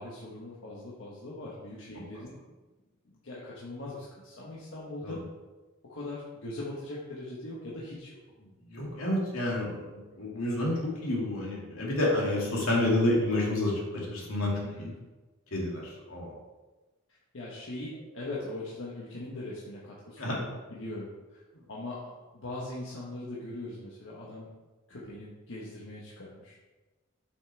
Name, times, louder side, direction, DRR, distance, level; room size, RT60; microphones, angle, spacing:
voice 1, 0.0-2.4 3.1-5.2 5.9-8.2 14.6-14.9 17.3-21.4 21.7-24.5 24.9-26.5, left 2 dB, 65° left, -6 dB, 1.4 m, -41 dB
voice 2, 8.7-14.9 15.5-16.3 20.2-20.5, left 1 dB, 80° left, -3 dB, 2.4 m, -29 dB
8.1 x 6.1 x 3.4 m, 1.2 s
head